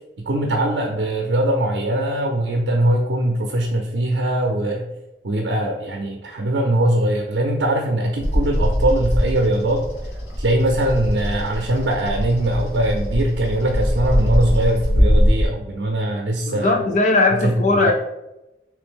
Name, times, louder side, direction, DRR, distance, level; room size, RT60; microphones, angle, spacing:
voice 1, 0.2-4.8 5.2-9.8 10.4-16.8 17.4-17.9, right 1 dB, 75° right, 2 dB, 0.5 m, -21 dB
Bird vocalization bird call bird song, 8.2-15.5, equal, 90° left, 1.4 m, -21 dB
voice 2, 16.4-17.9, left 2 dB, 40° left, 4 dB, 0.5 m, -18 dB
3.4 x 3.2 x 3.6 m, 0.94 s
head